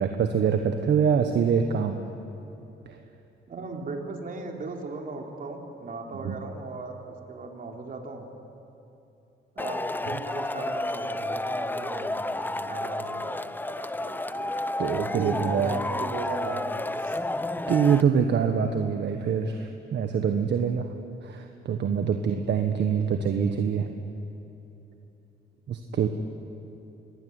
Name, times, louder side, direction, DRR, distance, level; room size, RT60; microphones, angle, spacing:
voice 1, 0.0-2.0 2.8-3.0 6.2-6.3 14.8-15.7 17.7-20.9 21.2-23.9 25.7-26.1, right 7 dB, 60° right, 5 dB, 1.5 m, -25 dB
voice 2, 3.5-8.3 9.6-14.5 15.1-17.2, right 3 dB, 45° right, 2 dB, 3.8 m, -37 dB
Male speech man speaking / Shout / Clapping, 9.6-18.0, left 2 dB, 10° left, 0.7 m, -31 dB
25.0 x 19.0 x 9.7 m, 2.9 s
cardioid pair, 90°, 20 cm